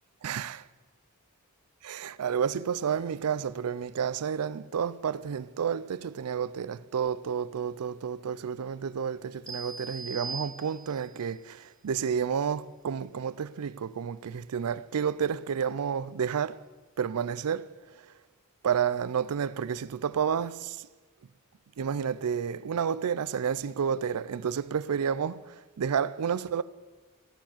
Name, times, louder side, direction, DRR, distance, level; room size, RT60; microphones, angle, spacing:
voice 1, 0.2-0.6 1.8-16.6 17.0-17.7 18.6-20.9 21.8-26.6, right 7 dB, 85° right, 0.4 m, -30 dB
sound 1, 9.5-11.2, right 3 dB, 5° left, 1.9 m, -40 dB
14.5 x 7.2 x 7.3 m
head